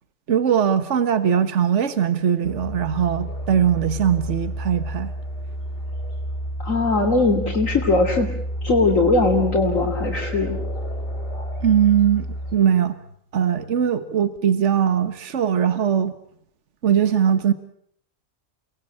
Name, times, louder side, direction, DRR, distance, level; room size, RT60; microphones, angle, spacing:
voice 1, 0.3-5.1 11.6-13.0 13.3-16.1 16.8-17.5, right 8 dB, 65° right, 11 dB, 1.6 m, -20 dB
sound 1, 2.4-12.6, equal, 45° left, 3.1 m, -30 dB
voice 2, 6.6-8.3 8.6-10.6, left 3 dB, 75° left, 0 dB, 3.3 m, -20 dB
30.0 x 20.0 x 8.7 m, 0.70 s
omnidirectional pair, 1.4 m